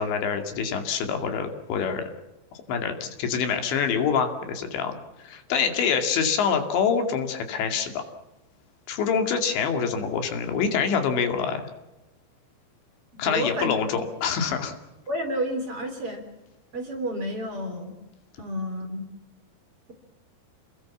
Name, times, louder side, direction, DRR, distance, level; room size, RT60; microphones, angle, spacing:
voice 1, 0.0-2.1 2.7-8.0 8.9-11.7 13.2-14.7, left 6 dB, 75° left, 6 dB, 4.7 m, -26 dB
voice 2, 13.1-13.8 15.1-16.2 16.7-17.9 18.4-19.1, equal, 30° right, 5 dB, 4.2 m, -30 dB
29.0 x 20.5 x 7.3 m, 0.97 s
omnidirectional pair, 5.2 m